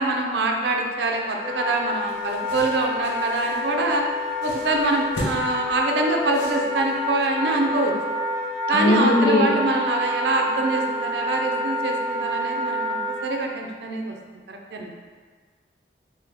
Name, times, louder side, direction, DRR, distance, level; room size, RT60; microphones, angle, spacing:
voice 1, 0.0-4.0 4.4-7.9 8.7-14.1 14.5-14.9, right 2 dB, 65° right, 2 dB, 0.4 m, -25 dB
Wind instrument woodwind instrument, 1.0-13.2, left 1 dB, 5° left, 1.0 m, -28 dB
sound 1, 1.7-7.1, equal, 75° left, 0.9 m, -38 dB
voice 2, 8.7-9.5, left 2 dB, 55° left, 1 dB, 0.4 m, -19 dB
3.4 x 2.8 x 3.3 m, 1.5 s
head